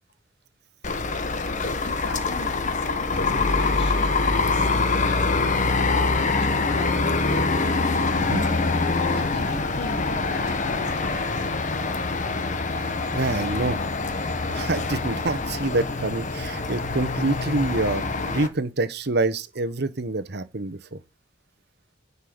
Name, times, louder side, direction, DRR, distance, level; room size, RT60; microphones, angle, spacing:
sound 1, 0.8-18.5, left 3 dB, 40° left, 1.2 m, -25 dB
voice 1, 1.8-7.5 9.0-12.0, left 2 dB, 65° left, 2.9 m, -39 dB
voice 2, 8.2-8.5 13.1-13.8 14.5-21.0, right 2 dB, 60° right, 1.0 m, -26 dB
10.0 x 5.5 x 5.1 m
head